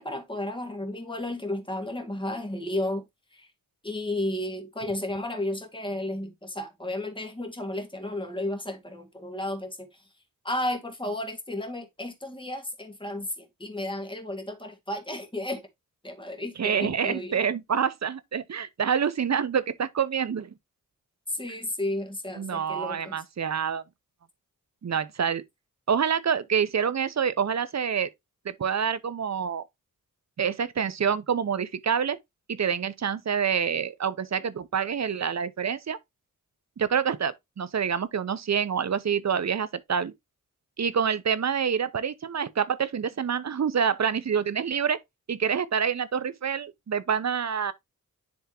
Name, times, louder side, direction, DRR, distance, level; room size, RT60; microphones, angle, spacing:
voice 1, 0.0-3.0 3.3-3.5 3.8-10.0 10.4-15.6 16.0-17.4 21.3-23.2, left 1 dB, 15° left, 2.0 m, -33 dB
voice 2, 16.6-20.5 22.4-23.8 24.8-25.4 25.9-28.1 28.4-29.6 30.4-32.2 32.5-36.0 36.8-40.1 40.8-45.0 45.3-47.7, right 7 dB, 55° right, 0.7 m, -27 dB
10.5 x 3.5 x 2.9 m
cardioid pair, 65°, 33 cm